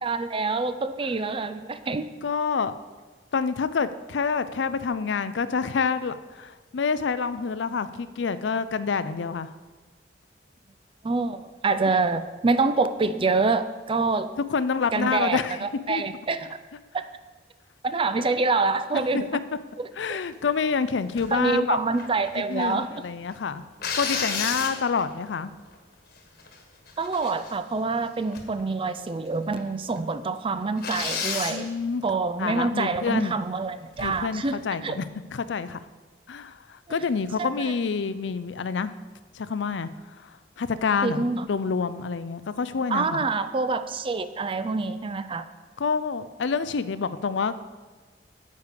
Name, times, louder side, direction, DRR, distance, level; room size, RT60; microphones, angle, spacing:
voice 1, 0.0-2.1 11.0-14.3 14.9-16.6 16.9-17.0 17.8-19.3 19.8-20.2 21.3-22.9 27.0-31.7 32.0-35.0 36.9-37.0 37.4-37.5 41.0-41.5 42.9-45.5, right 3 dB, 30° right, 11 dB, 0.5 m, -26 dB
voice 2, 2.2-2.7 3.3-9.5 14.5-16.0 18.2-18.3 19.1-19.4 19.9-21.8 22.4-23.6 24.0-25.5 31.5-32.0 32.4-33.3 34.0-35.1 35.3-35.8 36.3-38.9 39.3-39.9 40.2-43.2 45.8-47.5, left 5 dB, 80° left, 13 dB, 0.5 m, -27 dB
sound 1, 21.2-21.4 21.9-22.8 23.8-25.1 25.7-25.8 26.2-26.6 26.9-27.8 28.3-28.6 28.9-29.0 29.6-29.7 30.0-30.1 30.8-31.6 33.9-34.3, left 5 dB, 60° left, 1.5 m, -31 dB
9.4 x 8.2 x 5.1 m, 1.4 s
head